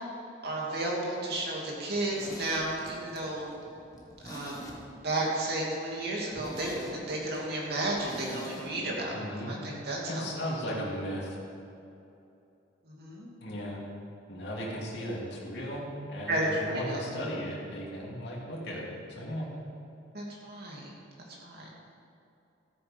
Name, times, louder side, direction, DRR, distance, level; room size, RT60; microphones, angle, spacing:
voice 1, 0.4-3.5 4.2-4.6 5.0-10.3 12.8-13.3 16.3-17.0 20.1-20.9 21.4-21.7, right 1 dB, 55° right, -3 dB, 2.6 m, -33 dB
Zipper (clothing), 1.9-5.2 5.5-5.6 5.9-6.0 6.3-8.7 9.0-9.1, equal, 20° left, 1.4 m, -45 dB
voice 2, 9.1-9.5 10.1-11.4 13.4-13.9 14.3-19.5, equal, 60° left, -4 dB, 2.7 m, -36 dB
13.5 x 8.6 x 5.3 m, 2.7 s
head